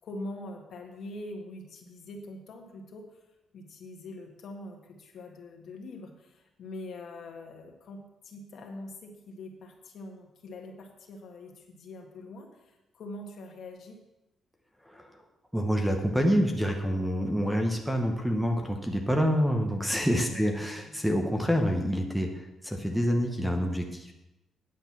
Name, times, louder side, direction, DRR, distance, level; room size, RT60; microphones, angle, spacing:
voice 1, 0.0-3.2 3.5-14.0 20.3-20.5 20.8-21.0, left 2 dB, 60° left, 2 dB, 1.8 m, -43 dB
voice 2, 15.5-24.1, equal, ahead, 3 dB, 0.9 m, -27 dB
9.4 x 7.9 x 5.9 m, 0.96 s
cardioid pair, 155°, 0 cm